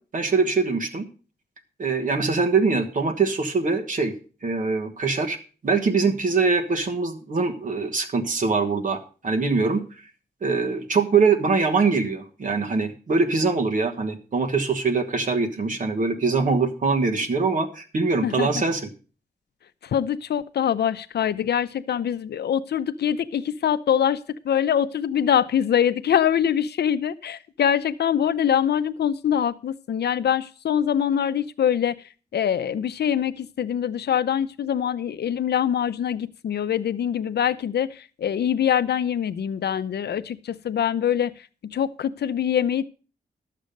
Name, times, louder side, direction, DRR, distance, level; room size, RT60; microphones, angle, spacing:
voice 1, 0.1-1.0 1.8-4.1 4.4-5.4 5.6-9.8 10.4-18.8, right 4 dB, 55° right, 5 dB, 1.3 m, -23 dB
voice 2, 19.8-31.9 32.3-41.3 41.7-42.8, left 9 dB, 90° left, 14 dB, 0.5 m, -24 dB
11.5 x 7.4 x 5.2 m, 0.37 s
wide cardioid pair, 170°, 17 cm